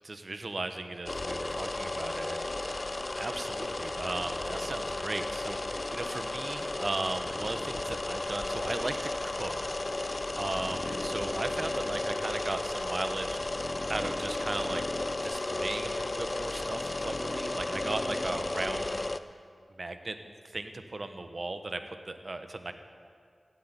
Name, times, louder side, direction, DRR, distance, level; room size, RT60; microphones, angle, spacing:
voice 1, 0.0-9.6 9.9-14.8 15.2-19.1 19.7-20.2 20.4-22.7, right 2 dB, 55° right, 8 dB, 1.2 m, -37 dB
sound 1, 1.1-19.2, left 2 dB, 40° left, 0.6 m, -34 dB
16.0 x 8.3 x 10.0 m, 2.2 s
cardioid pair, 50°, 0 cm